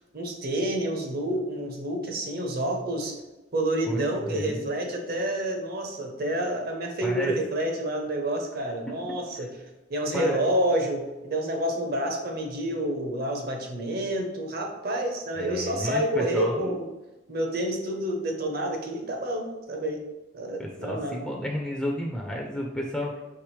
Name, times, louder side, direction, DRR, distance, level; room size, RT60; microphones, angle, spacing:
voice 1, 0.1-3.2 3.5-9.5 9.9-16.8 17.3-20.0 20.3-21.2, right 1 dB, 55° right, 2 dB, 0.8 m, -28 dB
voice 2, 3.9-4.7 7.0-7.3 10.1-10.4 15.4-16.7 20.6-23.2, equal, 5° left, -1 dB, 0.4 m, -32 dB
4.7 x 3.4 x 3.2 m, 1.1 s
head